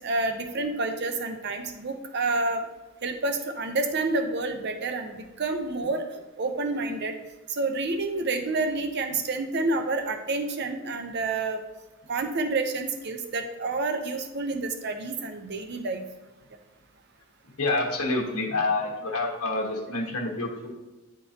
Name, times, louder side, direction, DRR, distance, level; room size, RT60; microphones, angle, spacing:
voice 1, 0.0-2.6 3.0-6.0 6.4-7.1 7.5-11.6 12.1-16.0, right 3 dB, 50° right, 7 dB, 0.6 m, -29 dB
voice 2, 17.6-20.7, left 2 dB, 90° left, 0 dB, 1.2 m, -27 dB
9.6 x 3.8 x 2.8 m, 1.1 s
head